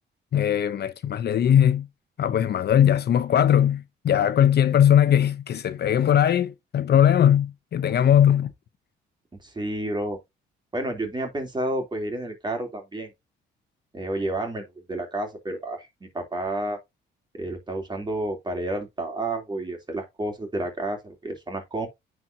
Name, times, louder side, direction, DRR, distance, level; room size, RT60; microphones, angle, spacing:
voice 1, 0.3-1.9 2.2-8.5, left 10 dB, 55° left, 0.8 m, -20 dB
voice 2, 9.4-10.2 10.7-13.1 13.9-15.9 16.1-16.8 17.3-21.9, right 1 dB, 20° right, 3.2 m, -30 dB
9.6 x 4.5 x 2.8 m
cardioid pair, 90°, 20 cm